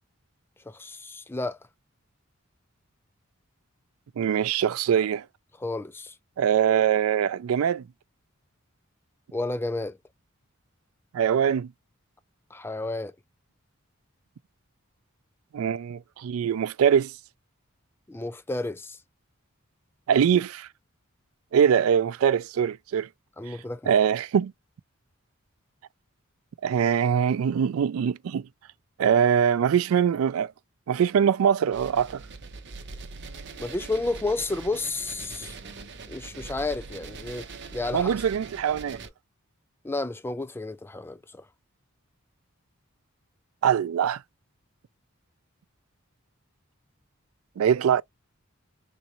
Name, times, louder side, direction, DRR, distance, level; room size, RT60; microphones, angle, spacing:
voice 1, 0.7-1.6 5.6-6.1 9.3-10.0 12.5-13.1 18.1-19.0 23.4-23.9 33.6-35.6 36.1-37.5 37.7-38.1 39.8-41.2, left 2 dB, 10° left, 0.3 m, -31 dB
voice 2, 4.2-5.3 6.4-7.9 11.1-11.7 15.5-17.1 20.1-20.7 21.5-23.1 23.5-23.6 23.9-24.5 26.6-28.5 29.0-30.5 30.9-32.2 37.9-39.0 43.6-44.2 47.6-48.0, right 8 dB, 80° right, 0.3 m, -23 dB
sound 1, 31.7-39.1, right 4 dB, 55° right, 0.8 m, -42 dB
3.9 x 2.5 x 3.0 m
head